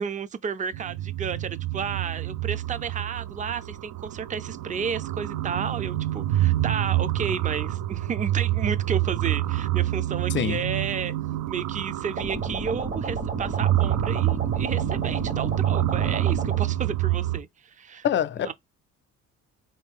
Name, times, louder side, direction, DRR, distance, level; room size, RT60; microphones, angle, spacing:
voice 1, 0.0-11.1 11.5-18.1 18.4-18.5, right 6 dB, 25° right, 0.4 m, -32 dB
sound 1, 0.7-17.4, right 14 dB, 85° right, 0.5 m, -27 dB
voice 2, 10.3-10.6 18.0-18.5, left 9 dB, 40° left, 0.4 m, -25 dB
sound 2, 12.2-16.6, right 3 dB, 45° right, 1.2 m, -32 dB
3.8 x 2.7 x 3.5 m
cardioid pair, 90°, 30 cm